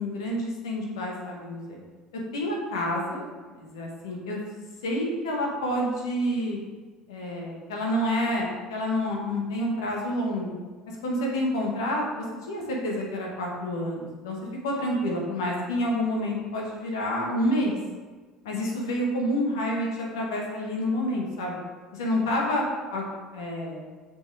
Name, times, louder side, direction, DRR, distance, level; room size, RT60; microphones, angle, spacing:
voice 1, 0.0-1.8 2.3-3.2 3.6-4.4 4.8-6.6 7.1-10.5 11.0-14.4 14.6-17.8 18.4-21.6 21.9-22.6 22.9-23.0 23.3-23.8, left 1 dB, 70° left, -2 dB, 1.9 m, -28 dB
6.7 x 5.4 x 5.0 m, 1.4 s
figure-of-eight pair, 65°, 3 cm